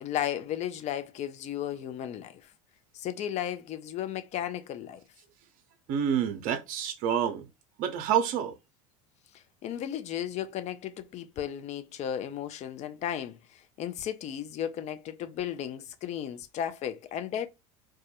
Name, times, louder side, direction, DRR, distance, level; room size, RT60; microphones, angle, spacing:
voice 1, 0.0-2.5 2.9-5.0 9.6-17.5, left 10 dB, 40° left, 0.4 m, -34 dB
voice 2, 5.9-7.5 7.8-8.6, right 8 dB, 55° right, 0.5 m, -28 dB
2.2 x 2.1 x 2.8 m
hypercardioid pair, 80°, 18 cm